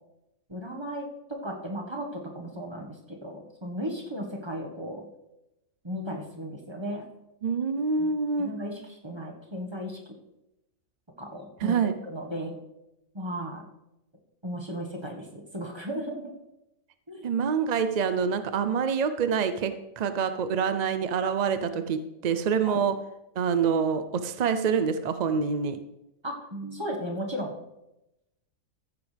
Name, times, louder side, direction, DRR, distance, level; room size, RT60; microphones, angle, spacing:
voice 1, 0.5-5.0 5.8-7.0 8.0-8.1 8.4-10.1 11.2-11.8 12.0-12.5 13.1-13.6 14.4-16.3 17.1-17.3 22.7-22.8 26.2-27.6, equal, 20° right, 1 dB, 1.5 m, -35 dB
voice 2, 7.4-8.5 11.6-11.9 17.2-23.0 23.4-25.8, right 6 dB, 55° right, 10 dB, 0.4 m, -26 dB
14.5 x 9.7 x 3.4 m, 0.92 s
omnidirectional pair, 1.4 m